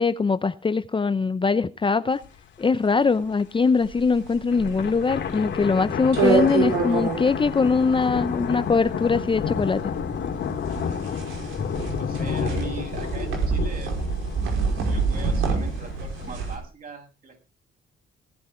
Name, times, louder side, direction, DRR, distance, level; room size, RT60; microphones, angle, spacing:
voice 1, 0.0-2.2 2.6-9.8, left 4 dB, 25° left, 13 dB, 0.7 m, -22 dB
sound 1, 2.2-2.3 2.7-2.8 3.2-3.6 4.4-16.5, left 7 dB, 65° left, 2.9 m, -31 dB
sound 2, 3.8-16.6, right 4 dB, 90° right, 5.4 m, -27 dB
voice 2, 12.0-13.9 14.8-17.4, right 4 dB, 45° right, 3 dB, 7.9 m, -40 dB
18.0 x 11.0 x 4.5 m, 0.32 s
cardioid pair, 90°, 20 cm